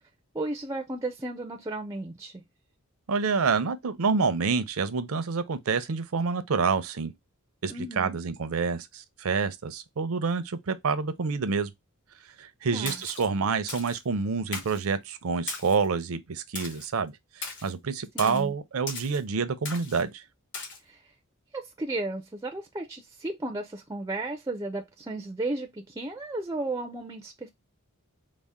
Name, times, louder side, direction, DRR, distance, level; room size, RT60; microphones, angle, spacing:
voice 1, 0.3-2.4 7.7-8.2 12.7-13.0 18.1-18.5 20.8-21.1 21.5-27.5, right 2 dB, 15° right, 0.4 m, -34 dB
voice 2, 3.1-7.1 7.6-11.7 12.4-20.2, right 5 dB, 65° right, 0.5 m, -28 dB
Splash splatter, 12.9-13.3 13.7-14.0 14.5-14.8 15.5-15.9 16.6-16.9 17.4-17.7 18.2-18.4 18.9-19.2 19.7-20.0 20.5-20.8, left 4 dB, 55° left, 1.1 m, -38 dB
4.1 x 2.0 x 3.5 m
head